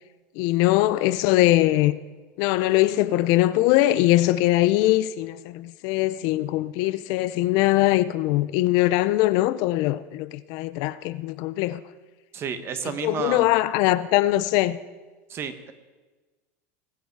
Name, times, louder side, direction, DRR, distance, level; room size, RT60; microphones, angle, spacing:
voice 1, 0.4-2.0 2.4-11.8 13.0-14.8, left 16 dB, 60° left, 0.6 m, -21 dB
voice 2, 12.3-13.5 15.3-15.7, right 6 dB, 35° right, 1.2 m, -31 dB
20.5 x 8.2 x 4.7 m
supercardioid pair, 130°, 8 cm